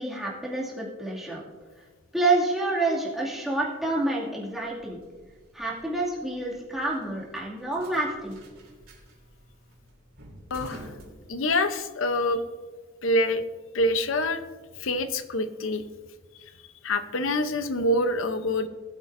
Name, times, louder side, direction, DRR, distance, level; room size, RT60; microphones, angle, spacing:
voice 1, 0.0-1.4 2.1-5.0 5.5-8.4, right 2 dB, ahead, -5 dB, 2.3 m, -28 dB
sound 1, 4.6-11.9, right 1 dB, 75° right, 3.3 m, -49 dB
voice 2, 10.5-10.9 11.3-12.4 13.0-13.4 13.7-14.4 14.8-15.8 16.8-18.7, left 1 dB, 65° left, 11 dB, 0.8 m, -25 dB
19.0 x 8.3 x 2.6 m, 1.4 s
head